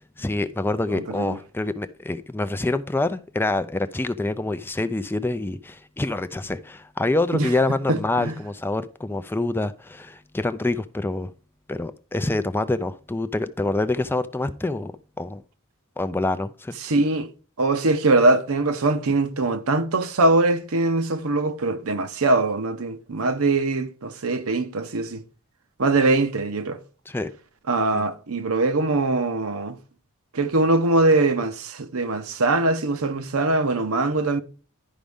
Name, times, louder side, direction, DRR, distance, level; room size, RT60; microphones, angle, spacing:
voice 1, 0.2-11.3 11.7-15.4 16.0-16.7 27.1-27.3 27.9-28.0, left 2 dB, 10° left, 0.3 m, -26 dB
voice 2, 0.9-1.4 7.3-7.5 7.9-8.4 16.8-17.3 17.6-25.2 25.8-26.8 27.7-29.8 30.3-34.4, right 2 dB, 70° right, 0.8 m, -22 dB
11.0 x 5.1 x 3.5 m
head